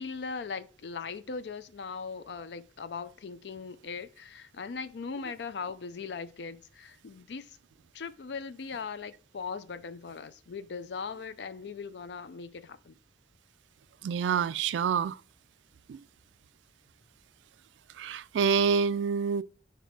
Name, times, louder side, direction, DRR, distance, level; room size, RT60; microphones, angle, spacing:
voice 1, 0.0-7.6 7.9-12.9, left 5 dB, 70° left, 0.5 m, -39 dB
voice 2, 14.0-15.2 15.9-16.0 18.0-19.4, right 6 dB, 85° right, 0.3 m, -27 dB
5.0 x 4.5 x 4.6 m
head